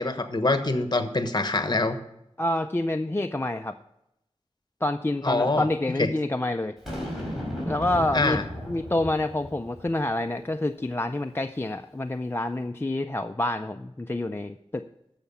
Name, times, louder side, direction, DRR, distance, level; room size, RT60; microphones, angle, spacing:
voice 1, 0.0-2.0 5.2-5.7 6.0-6.1 8.1-8.4, left 2 dB, 40° left, 9 dB, 1.1 m, -24 dB
voice 2, 2.4-3.7 4.8-6.7 7.7-8.4 8.7-14.8, left 1 dB, 20° left, 6 dB, 0.4 m, -27 dB
Boom, 6.9-10.2, equal, 5° right, 4.9 m, -35 dB
14.0 x 5.8 x 5.5 m, 0.83 s
wide cardioid pair, 70°, 11 cm